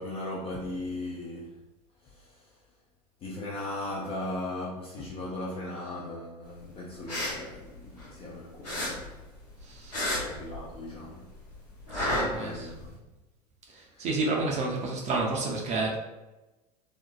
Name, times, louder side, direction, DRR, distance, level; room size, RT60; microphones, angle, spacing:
voice 1, 0.0-1.5 2.0-2.6 3.2-9.1 10.1-11.3 12.1-12.9 13.9-14.1, left 1 dB, 30° left, 0.4 m, -38 dB
sound 1, 6.9-8.3 8.6-11.0 11.3-12.9, left 1 dB, 80° left, 1.0 m, -32 dB
voice 2, 9.6-10.0 11.9-12.7 13.7-16.0, right 3 dB, 35° right, 0.5 m, -30 dB
2.5 x 2.1 x 2.3 m
figure-of-eight pair, 75°, 20 cm